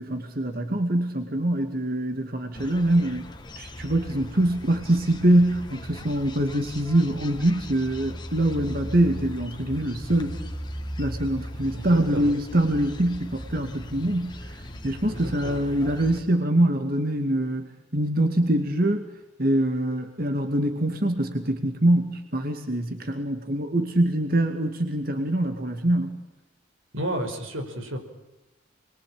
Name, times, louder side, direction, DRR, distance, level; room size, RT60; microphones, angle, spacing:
voice 1, 0.0-10.4 11.0-14.3 14.8-19.1 19.4-26.2, right 1 dB, 45° right, 5 dB, 2.3 m, -24 dB
sound 1, 2.5-16.2, equal, 20° left, 2.0 m, -38 dB
voice 2, 11.8-12.3 15.1-15.6 26.9-28.1, right 1 dB, 85° right, 5 dB, 5.3 m, -32 dB
29.0 x 23.0 x 8.9 m, 0.97 s
head